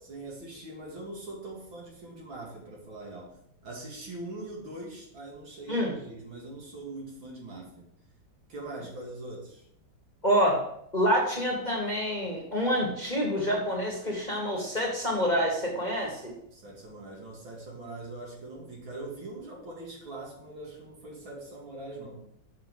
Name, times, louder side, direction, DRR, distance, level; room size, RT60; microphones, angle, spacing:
voice 1, 0.0-3.4 3.6-7.8 8.5-9.7 16.5-22.3, right 2 dB, 75° right, -2 dB, 2.8 m, -42 dB
voice 2, 10.2-10.6 10.9-16.3, equal, 25° left, -2 dB, 1.4 m, -27 dB
6.8 x 5.6 x 4.9 m, 0.73 s
omnidirectional pair, 2.2 m